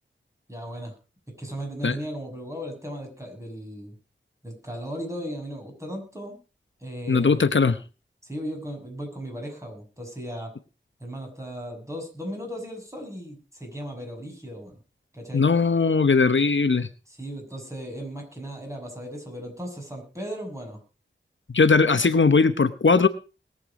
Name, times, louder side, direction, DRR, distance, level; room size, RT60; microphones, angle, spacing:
voice 1, 0.5-0.9 1.4-4.0 4.4-6.4 6.8-7.7 8.2-10.5 11.0-14.8 15.1-15.4 17.1-20.8, equal, 15° right, 2 dB, 6.6 m, -36 dB
voice 2, 7.1-7.8 15.3-16.9 21.5-23.1, left 4 dB, 70° left, 11 dB, 0.9 m, -19 dB
21.0 x 8.2 x 4.8 m, 0.34 s
wide cardioid pair, 60°, 20 cm